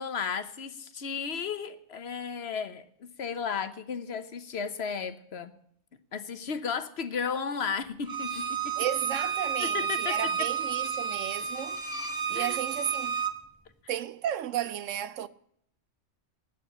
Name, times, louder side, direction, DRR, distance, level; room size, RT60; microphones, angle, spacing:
voice 1, 0.0-5.5 6.1-8.8 9.6-10.2 12.3-12.6, left 6 dB, 55° left, 1.2 m, -34 dB
Bowed string instrument, 8.1-13.3, right 7 dB, 20° right, 1.0 m, -31 dB
voice 2, 8.8-11.8 12.3-13.3 13.9-15.3, right 11 dB, 75° right, 1.0 m, -33 dB
9.5 x 9.2 x 9.8 m
omnidirectional pair, 1.3 m